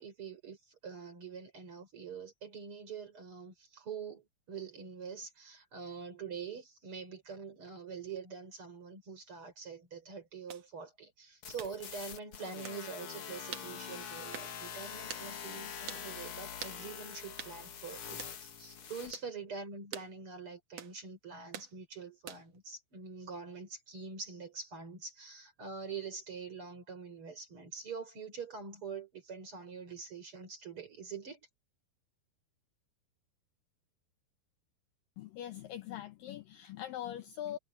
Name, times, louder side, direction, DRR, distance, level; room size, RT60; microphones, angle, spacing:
voice 1, 0.0-31.4, right 5 dB, 30° right, 5.5 m, -45 dB
sound 1, 10.5-10.7 11.6-11.8 12.6-12.8 13.5-13.7 14.3-14.5 15.1-15.3 15.9-16.1 16.6-16.8 17.4-17.6 18.2-18.4 19.1-19.3 19.9-20.1 20.8-21.0 21.5-21.7 22.3-22.6, right 8 dB, 55° right, 2.0 m, -44 dB
sound 2, 11.4-19.1, left 7 dB, 55° left, 1.6 m, -44 dB
voice 2, 35.2-37.6, left 11 dB, 75° left, 2.2 m, -42 dB
omnidirectional pair, 4.7 m